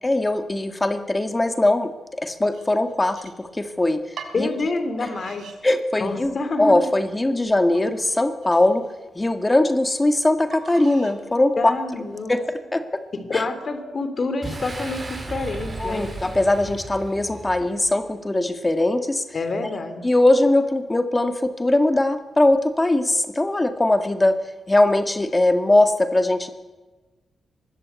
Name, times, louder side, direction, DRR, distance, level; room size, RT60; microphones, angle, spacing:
voice 1, 0.0-4.5 5.0-5.1 5.6-8.9 9.2-11.7 12.3-13.0 13.3-13.4 15.8-19.2 20.0-24.4 24.7-26.5, left 2 dB, 15° left, 7 dB, 1.9 m, -21 dB
sound 1, 2.5-3.7 4.2-4.4 5.0-5.6 6.0-6.5 7.0-7.1 7.7-9.3 10.5-11.2 11.8-12.2, right 6 dB, 85° right, 4.7 m, -43 dB
voice 2, 4.3-5.5 6.0-6.8 11.6-12.4 13.1-16.1 19.3-20.0, left 3 dB, 40° left, 9 dB, 3.4 m, -27 dB
Boom, 14.4-18.0, right 2 dB, 25° right, 5.8 m, -35 dB
24.0 x 20.5 x 8.4 m, 1.2 s
wide cardioid pair, 135°, 0 cm